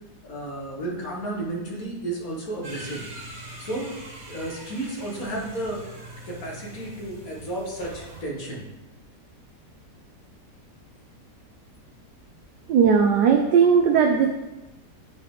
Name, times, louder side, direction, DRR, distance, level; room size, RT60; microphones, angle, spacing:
voice 1, 0.2-3.1 3.6-3.9 4.3-5.8 6.3-8.6, right 1 dB, 60° left, -3 dB, 2.0 m, -32 dB
sound 1, 2.6-8.2, right 2 dB, 60° right, 2.1 m, -42 dB
voice 2, 12.7-14.3, right 6 dB, 90° right, 4 dB, 1.3 m, -18 dB
9.2 x 4.2 x 3.7 m, 1.1 s
omnidirectional pair, 1.8 m